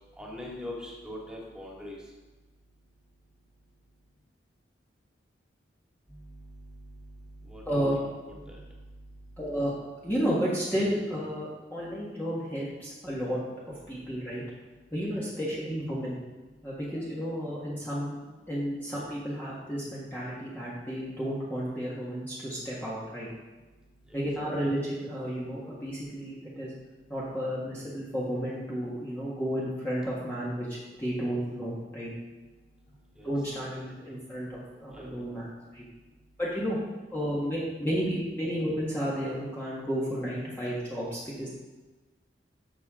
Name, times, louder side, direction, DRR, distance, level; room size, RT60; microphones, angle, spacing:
voice 1, 0.1-2.1 6.1-8.0 8.3-9.6 15.1-15.3 16.8-17.0 23.6-24.2 32.5-33.3 34.9-35.3 35.8-36.4, left 1 dB, 5° right, -4 dB, 2.2 m, -44 dB
voice 2, 7.6-8.0 9.4-9.7 10.0-13.4 13.9-14.4 14.9-16.2 16.6-18.2 18.5-23.3 24.1-26.7 27.1-32.1 33.2-35.5 35.7-35.8 36.4-36.8 37.1-41.5, equal, 10° left, -8 dB, 1.6 m, -32 dB
12.0 x 7.3 x 3.7 m, 1.2 s
head